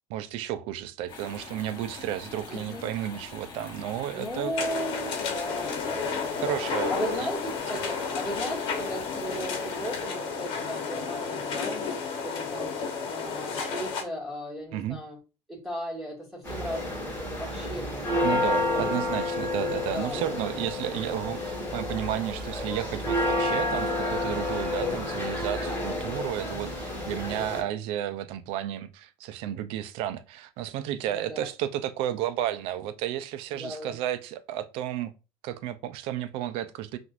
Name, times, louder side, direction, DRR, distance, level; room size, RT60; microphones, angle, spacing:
voice 1, 0.1-4.5 6.4-6.9 7.2-7.3 9.3-9.4 14.7-15.0 18.2-35.1 35.4-37.0, right 12 dB, 70° right, 0.5 m, -32 dB
sound 1, 1.1-10.0, left 4 dB, 40° left, 1.8 m, -44 dB
voice 2, 2.5-2.9 4.0-6.6 6.9-12.0 12.2-12.7 13.1-15.2 15.5-18.9 19.9-20.5 24.8-25.2 26.9-27.3 31.0-31.5 33.5-33.9, equal, ahead, 2.3 m, -37 dB
sound 2, 4.6-14.0, left 5 dB, 60° left, 1.2 m, -32 dB
sound 3, 16.4-27.6, left 2 dB, 20° left, 2.4 m, -30 dB
5.8 x 2.6 x 2.5 m
supercardioid pair, 100°, 10 cm